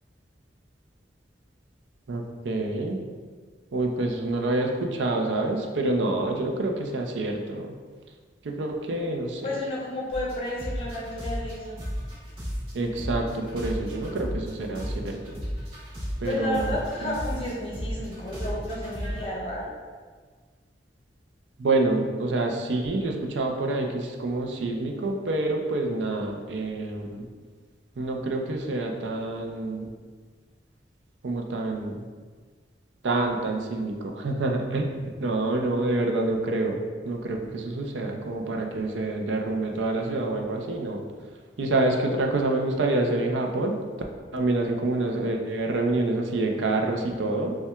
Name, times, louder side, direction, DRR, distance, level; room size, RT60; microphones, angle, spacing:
voice 1, 2.1-3.0 3.7-7.7 8.4-9.4 12.7-15.4 16.2-16.7 17.0-17.1 21.6-27.3 28.0-29.9 31.2-32.0 33.0-36.8 37.1-41.0 41.6-43.8 44.3-47.6, right 2 dB, 85° right, 2 dB, 0.5 m, -27 dB
voice 2, 9.4-11.8 16.2-19.7, left 1 dB, 30° left, -4 dB, 0.7 m, -31 dB
sound 1, 10.1-12.7 13.0-19.2, equal, 30° right, 1.2 m, -33 dB
5.6 x 2.2 x 2.3 m, 1.5 s
head